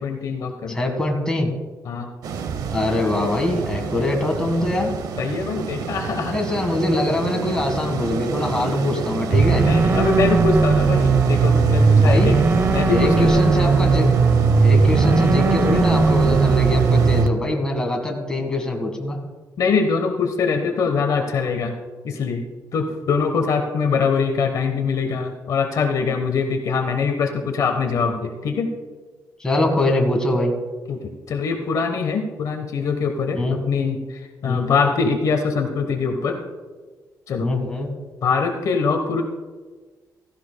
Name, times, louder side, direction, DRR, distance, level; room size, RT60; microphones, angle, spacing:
voice 1, 0.0-0.8 1.8-2.1 5.2-6.4 9.6-12.4 12.7-13.4 19.6-21.7 22.0-22.4 22.7-28.7 30.9-36.4 37.3-37.5 38.2-39.2, left 5 dB, 60° left, 5 dB, 1.1 m, -23 dB
voice 2, 0.7-1.5 2.7-4.9 6.3-9.6 11.9-12.4 12.9-14.1 14.6-19.2 29.4-30.5 33.3-33.6 34.4-34.7 37.4-37.9, left 1 dB, 10° left, 1 dB, 1.7 m, -23 dB
sound 1, 2.2-17.3, right 6 dB, 75° right, 0.8 m, -29 dB
sound 2, 9.3-17.3, right 4 dB, 35° right, 0.7 m, -17 dB
16.0 x 14.5 x 2.3 m, 1.4 s
cardioid pair, 165°, 7 cm